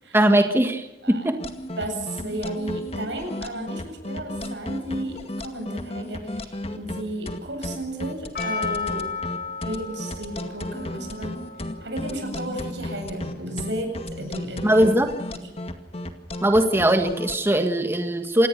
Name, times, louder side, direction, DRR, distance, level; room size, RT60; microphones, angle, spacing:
voice 1, 0.1-1.3 14.6-15.1 16.4-18.5, right 1 dB, 15° right, 6 dB, 1.7 m, -20 dB
sound 1, 1.4-17.4, left 1 dB, 35° left, 2.1 m, -34 dB
voice 2, 1.8-9.1 9.6-11.4 11.8-14.8 15.3-15.4, right 1 dB, 90° right, 4 dB, 7.8 m, -33 dB
Percussion, 8.3-13.6, left 5 dB, 55° left, 5.6 m, -34 dB
28.0 x 18.5 x 6.8 m, 0.98 s
head